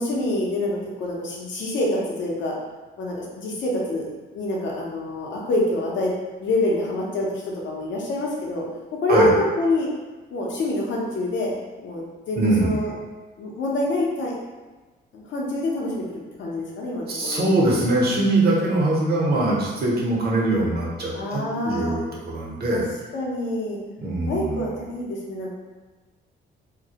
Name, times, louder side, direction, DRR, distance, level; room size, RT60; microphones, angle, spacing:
voice 1, 0.0-2.5 3.0-4.1 4.3-6.1 6.4-8.6 9.0-9.9 10.3-11.5 11.8-12.9 13.4-14.3 15.1-17.6 21.1-22.0 22.7-22.8 23.1-23.8 24.3-25.5, left 1 dB, 70° left, -3 dB, 0.7 m, -26 dB
voice 2, 12.4-12.8 17.1-22.9 24.0-24.7, right 2 dB, 55° right, -4 dB, 0.8 m, -22 dB
2.2 x 2.0 x 2.8 m, 1.3 s
cardioid pair, 90°, 20 cm